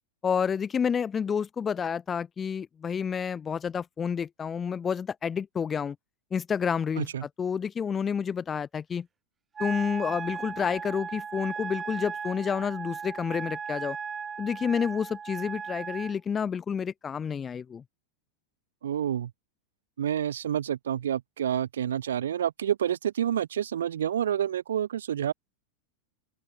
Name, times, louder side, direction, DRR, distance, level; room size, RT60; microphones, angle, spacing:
voice 1, 0.2-6.0 6.3-9.1 9.6-14.0 14.4-17.8, left 7 dB, 20° left, 1.5 m, -29 dB
Wind instrument woodwind instrument, 9.5-16.1, right 6 dB, 20° right, 1.1 m, -37 dB
voice 2, 18.8-19.3 20.0-25.3, right 10 dB, 65° right, 1.5 m, -28 dB
open air
figure-of-eight pair, 90°, 0 cm